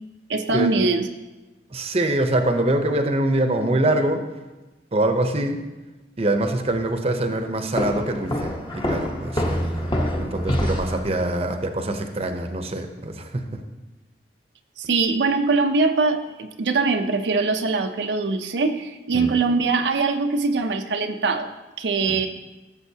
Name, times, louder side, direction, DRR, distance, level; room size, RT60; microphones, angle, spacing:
voice 1, 0.3-1.1 14.8-21.5 21.8-22.3, right 4 dB, 85° right, 5 dB, 0.6 m, -22 dB
voice 2, 1.7-4.2 4.9-5.6 6.2-13.6 19.1-19.4 22.1-22.3, right 1 dB, 35° right, 6 dB, 0.7 m, -24 dB
Walk footsteps, 7.8-11.1, equal, 25° left, 1.0 m, -26 dB
14.5 x 7.1 x 2.8 m, 1.1 s
head